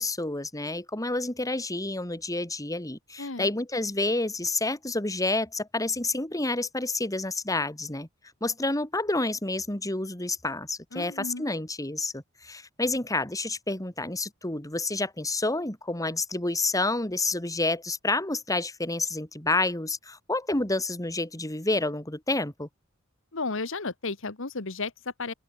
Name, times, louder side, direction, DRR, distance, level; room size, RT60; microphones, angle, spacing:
voice 1, 0.0-8.1 8.4-22.7, left 2 dB, 15° left, 2.7 m, -29 dB
voice 2, 3.2-3.5 10.9-11.5 23.3-25.3, left 3 dB, 70° left, 1.7 m, -33 dB
open air
head